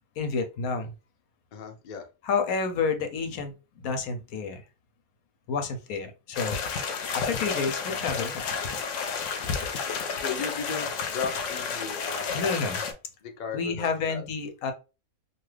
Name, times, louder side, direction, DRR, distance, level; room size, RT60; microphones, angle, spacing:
voice 1, 0.2-0.9 2.2-3.5 3.8-4.6 5.5-6.6 7.1-8.4 12.3-12.8 13.5-14.7, left 5 dB, 85° left, 6 dB, 1.1 m, -29 dB
voice 2, 1.5-2.1 10.2-12.6 13.2-14.2, left 5 dB, 55° left, 4 dB, 0.5 m, -36 dB
sound 1, 6.3-12.9, left 5 dB, 70° left, 0.9 m, -31 dB
2.7 x 2.4 x 3.2 m, 0.30 s
omnidirectional pair, 1.5 m